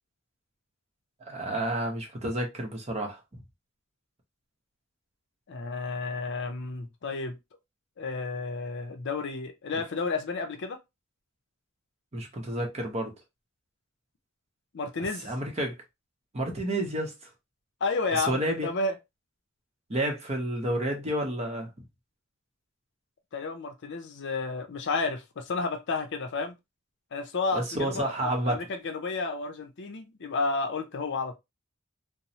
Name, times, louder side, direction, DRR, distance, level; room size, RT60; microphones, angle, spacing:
voice 1, 1.2-3.4 12.1-13.1 15.2-15.8 16.3-17.1 18.1-18.7 19.9-21.9 27.5-28.6, right 1 dB, 30° right, 0.7 m, -30 dB
voice 2, 5.5-7.4 8.0-10.8 14.7-15.3 17.8-19.0 23.3-26.6 27.1-31.4, left 3 dB, 55° left, 0.5 m, -31 dB
3.0 x 2.0 x 2.7 m
head